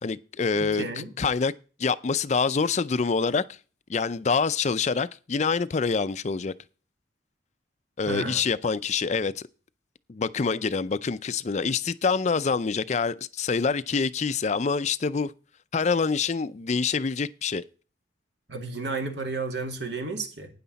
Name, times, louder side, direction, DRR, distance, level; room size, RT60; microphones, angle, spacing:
voice 1, 0.0-0.9 1.2-1.5 1.8-3.6 3.9-6.5 8.0-9.4 10.1-15.3 15.7-17.6, left 5 dB, 40° left, 0.4 m, -26 dB
voice 2, 0.8-1.1 8.1-8.4 18.5-20.5, right 3 dB, 75° right, 2.3 m, -32 dB
12.5 x 9.4 x 4.0 m
head